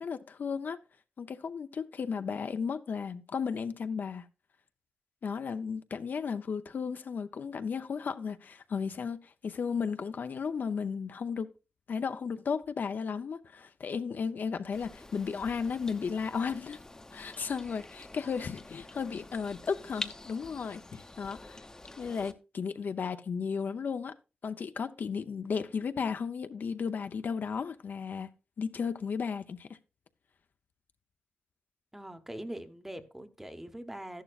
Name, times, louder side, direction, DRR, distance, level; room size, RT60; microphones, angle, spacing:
voice 1, 0.0-0.8 1.2-4.3 5.2-11.5 11.9-16.8 17.1-21.6 22.0-24.1 24.4-28.3 28.6-29.7, left 6 dB, 60° left, 0.6 m, -34 dB
sound 1, 14.7-22.3, left 2 dB, 20° left, 0.8 m, -47 dB
voice 2, 31.9-34.2, right 1 dB, 10° right, 0.9 m, -42 dB
13.0 x 11.0 x 2.4 m
wide cardioid pair, 140°, 3 cm